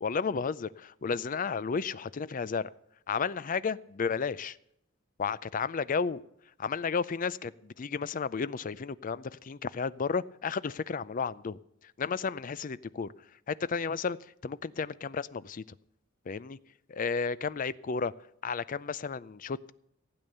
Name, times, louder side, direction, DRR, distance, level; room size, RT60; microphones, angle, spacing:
voice 1, 0.0-2.7 3.1-4.6 5.2-6.2 6.6-13.1 13.5-14.2 14.4-15.6 16.3-16.6 16.9-18.1 18.4-19.7, left 5 dB, 40° left, 18 dB, 0.4 m, -32 dB
15.5 x 8.8 x 6.7 m, 0.75 s
head